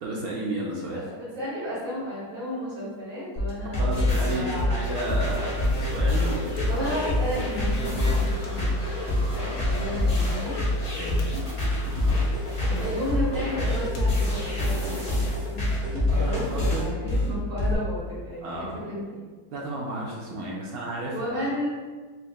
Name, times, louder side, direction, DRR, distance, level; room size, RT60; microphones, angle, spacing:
voice 1, 0.0-1.0 3.6-6.9 8.6-8.9 11.0-11.5 11.8-12.1 16.1-16.9 18.4-18.8 19.5-21.4, right 2 dB, 70° right, -3 dB, 0.9 m, -33 dB
voice 2, 0.9-4.7 6.7-10.5 10.9-11.4 12.8-19.2 21.1-21.7, equal, 45° right, -13 dB, 1.9 m, -33 dB
sound 1, 3.4-17.7, left 1 dB, 35° left, 1.2 m, -26 dB
sound 2, 4.9-14.6, left 2 dB, 75° left, 1.4 m, -45 dB
sound 3, 5.6-11.8, left 1 dB, 55° left, 1.3 m, -46 dB
4.9 x 3.0 x 2.2 m, 1.4 s
omnidirectional pair, 2.0 m